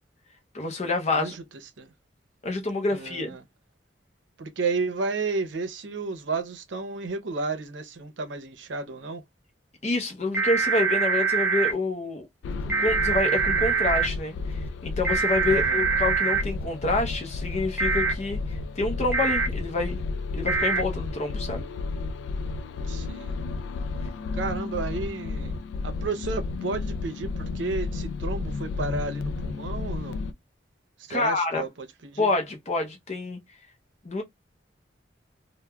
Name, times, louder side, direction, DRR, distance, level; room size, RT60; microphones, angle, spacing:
voice 1, 0.5-1.4 2.4-3.4 9.8-12.3 12.8-20.0 20.3-21.6 31.1-31.6 32.2-33.4 34.0-34.2, left 2 dB, 40° left, 0.6 m, -27 dB
voice 2, 2.9-3.4 4.4-9.2 15.4-15.8 22.7-23.4 24.3-25.6 25.8-30.2 31.0-32.3, right 4 dB, 85° right, 0.6 m, -32 dB
sound 1, 10.3-11.7 12.7-14.1 15.0-16.4 17.8-18.1 19.1-19.5 20.5-20.8, right 5 dB, 10° right, 0.8 m, -24 dB
sound 2, 12.4-30.3, left 3 dB, 80° left, 0.3 m, -32 dB
3.2 x 2.1 x 2.2 m
head